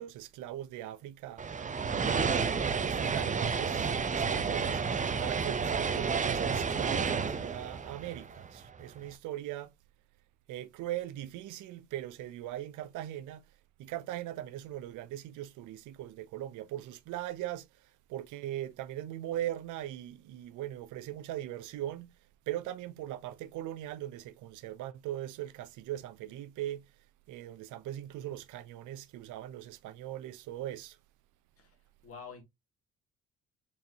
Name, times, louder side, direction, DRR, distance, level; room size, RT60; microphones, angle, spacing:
voice 1, 0.0-1.4 2.1-4.8 5.2-9.7 10.5-13.4 13.8-17.7 18.1-22.1 22.5-26.9 27.3-31.0, right 13 dB, 85° right, 0.5 m, -40 dB
sound 1, 1.4-8.8, right 5 dB, 25° right, 0.5 m, -31 dB
voice 2, 32.0-32.4, left 5 dB, 50° left, 1.9 m, -47 dB
4.5 x 3.4 x 2.7 m
cardioid pair, 90°, 30 cm